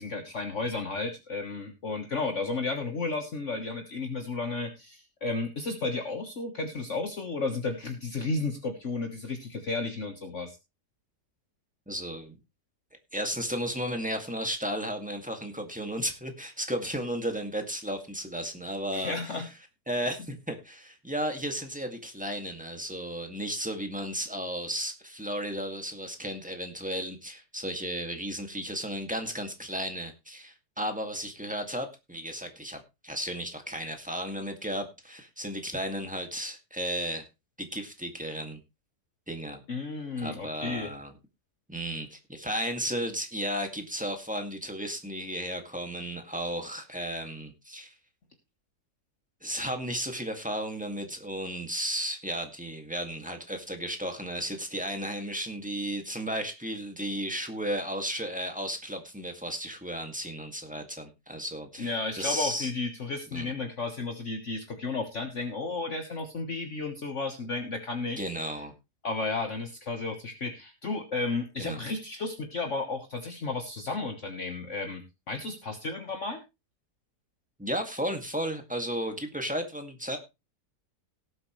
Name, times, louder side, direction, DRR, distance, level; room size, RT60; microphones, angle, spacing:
voice 1, 0.0-10.6 18.9-19.5 39.7-40.9 61.8-68.5 69.0-76.4, left 3 dB, 50° left, 4 dB, 1.6 m, -33 dB
voice 2, 11.9-12.4 13.1-19.4 19.9-37.3 37.6-38.6 39.3-39.6 40.2-41.1 41.7-47.9 49.4-62.7 63.3-63.5 68.2-68.7 71.6-71.8 77.6-80.2, equal, 5° right, 5 dB, 2.0 m, -34 dB
18.0 x 7.9 x 3.2 m, 0.26 s
omnidirectional pair, 1.8 m